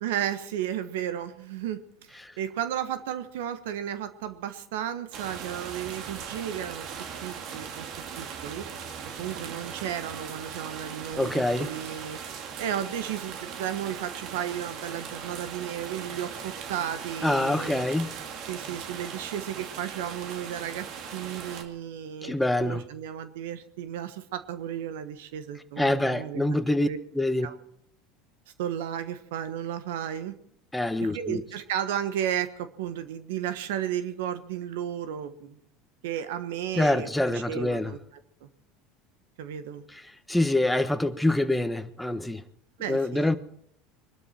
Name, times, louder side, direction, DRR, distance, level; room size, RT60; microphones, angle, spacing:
voice 1, 0.0-2.1 2.4-6.9 7.2-7.8 8.2-8.7 9.2-12.2 12.6-17.8 18.5-27.0 27.4-27.5 28.6-30.3 31.0-35.6 36.0-38.0 38.4-38.5 39.4-39.8 42.8-43.3, right 10 dB, 80° right, 1.3 m, -34 dB
sound 1, 5.1-21.6, right 7 dB, 60° right, 2.3 m, -39 dB
voice 2, 11.2-11.7 17.2-18.1 22.2-22.8 25.8-26.9 27.1-27.5 30.7-31.4 36.8-37.9 39.9-40.0 40.3-42.4 42.9-43.4, left 1 dB, 5° left, 1.3 m, -25 dB
23.5 x 12.5 x 4.4 m
hypercardioid pair, 90°, 0 cm